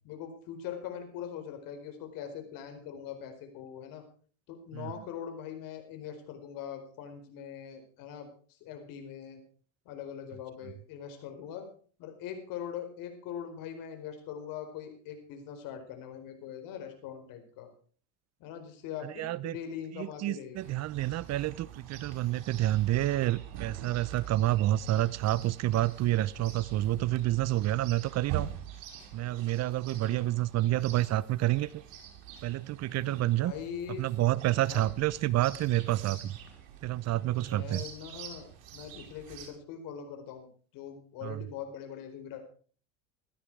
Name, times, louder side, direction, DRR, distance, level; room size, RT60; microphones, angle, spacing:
voice 1, 0.0-4.0 4.5-9.4 9.8-11.7 12.0-17.7 18.4-20.7 29.9-30.4 32.9-34.1 34.7-34.8 37.3-40.5 40.7-42.4, left 8 dB, 60° left, 6 dB, 4.6 m, -42 dB
voice 2, 19.0-19.6 19.9-28.5 29.1-31.8 32.4-33.5 34.0-36.4 36.8-37.8 41.2-41.4, right 15 dB, 45° right, 21 dB, 0.7 m, -29 dB
Chirp tweet, 20.5-39.5, right 10 dB, 70° right, 4.9 m, -45 dB
16.0 x 13.0 x 4.7 m, 0.43 s
hypercardioid pair, 90°, 38 cm